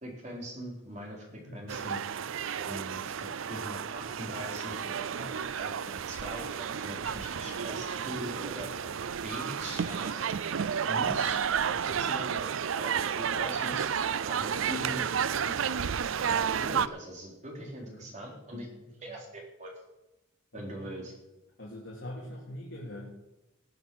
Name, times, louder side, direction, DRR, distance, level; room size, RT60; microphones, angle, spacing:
voice 1, 0.0-2.0 2.6-8.7 9.2-10.5 10.9-11.4 11.8-13.8 14.2-15.1 15.4-15.5 16.3-18.7 19.0-19.7 20.5-21.1, right 1 dB, 35° right, -1 dB, 3.8 m, -41 dB
voice 2, 1.3-1.6 5.2-5.4 11.7-12.2 17.6-18.1 18.5-18.9 20.5-20.9 21.6-23.1, left 1 dB, 70° left, -3 dB, 2.7 m, -44 dB
sound 1, 1.7-16.9, right 7 dB, 85° right, 0.5 m, -32 dB
19.5 x 6.9 x 6.2 m, 0.93 s
head